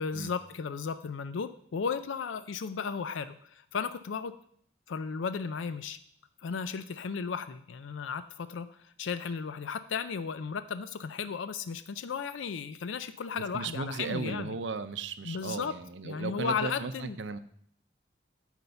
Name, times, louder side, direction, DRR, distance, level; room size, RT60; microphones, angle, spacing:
voice 1, 0.0-4.3 4.9-6.0 6.4-14.6 15.3-15.7 16.0-17.2, left 6 dB, 85° left, 12 dB, 0.4 m, -35 dB
voice 2, 13.5-17.4, right 4 dB, 75° right, 12 dB, 0.6 m, -36 dB
9.5 x 4.5 x 6.7 m, 0.65 s
head